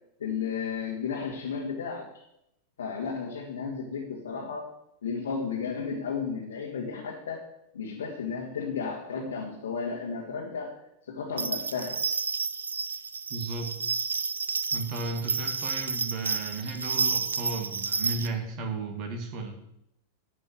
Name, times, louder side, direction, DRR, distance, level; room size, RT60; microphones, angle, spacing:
voice 1, 0.2-2.2 2.8-4.7 5.0-7.4 7.7-10.7 11.1-12.0, left 5 dB, 65° left, -2 dB, 1.9 m, -33 dB
sound 1, 11.4-18.3, right 5 dB, 75° right, 0.5 m, -30 dB
voice 2, 13.3-13.8 14.7-19.5, right 3 dB, 40° right, 4 dB, 2.0 m, -34 dB
11.0 x 5.3 x 8.1 m, 0.80 s
figure-of-eight pair, 90°, 0 cm